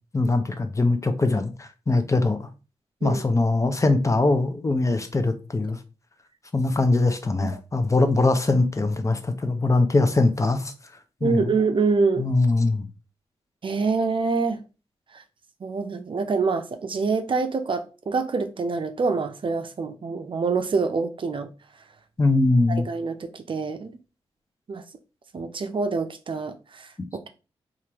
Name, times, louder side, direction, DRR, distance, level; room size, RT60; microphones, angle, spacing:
voice 1, 0.1-2.5 3.0-5.8 6.5-10.7 11.2-11.5 12.2-12.8 22.2-22.9, left 2 dB, 25° left, 0.6 m, -22 dB
voice 2, 11.2-12.3 13.6-14.6 15.1-15.2 15.6-21.5 22.7-23.9 24.7-24.8 25.3-27.3, right 4 dB, 50° right, 0.5 m, -26 dB
3.2 x 2.5 x 2.8 m
supercardioid pair, 45°, 11 cm